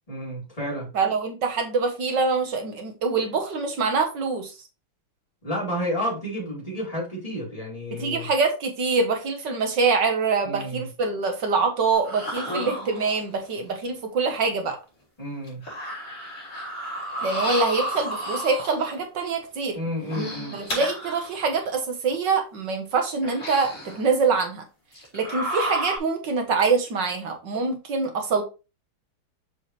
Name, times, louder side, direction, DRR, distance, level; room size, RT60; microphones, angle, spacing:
voice 1, 0.1-0.9 5.4-8.3 10.4-10.9 15.2-15.6 19.7-20.6, equal, 15° left, -5 dB, 4.0 m, -31 dB
voice 2, 0.9-4.5 7.9-14.8 17.2-19.8 20.5-24.6 25.1-28.4, right 4 dB, 60° right, 5 dB, 1.7 m, -25 dB
sound 1, 11.9-13.4 14.7-14.8 15.4-19.0 19.9-21.6 22.1-22.2 23.2-24.1 24.9-26.0, right 1 dB, 35° left, 4.2 m, -32 dB
6.8 x 5.3 x 3.1 m, 0.29 s
omnidirectional pair, 2.4 m